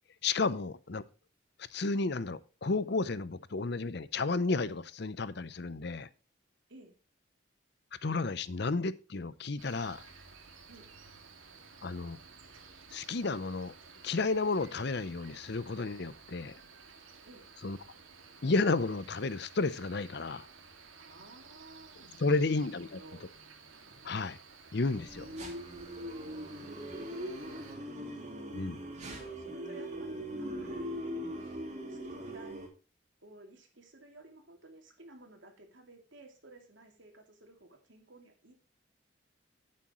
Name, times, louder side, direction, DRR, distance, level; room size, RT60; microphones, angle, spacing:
voice 1, 0.2-1.0 1.7-6.1 8.0-10.0 11.8-12.2 12.9-13.7 14.0-16.6 17.6-17.8 18.4-20.5 22.2-23.0 24.0-24.4 24.7-25.3 28.5-28.8, left 3 dB, 55° left, 0.7 m, -32 dB
Cricket, 9.6-27.8, right 4 dB, 85° right, 2.3 m, -54 dB
voice 2, 21.0-23.3 26.4-27.6 29.1-31.0 31.9-32.6 33.2-38.5, right 2 dB, 65° right, 2.8 m, -55 dB
sound 1, 25.0-32.7, equal, 35° right, 3.0 m, -40 dB
11.5 x 8.7 x 3.1 m
head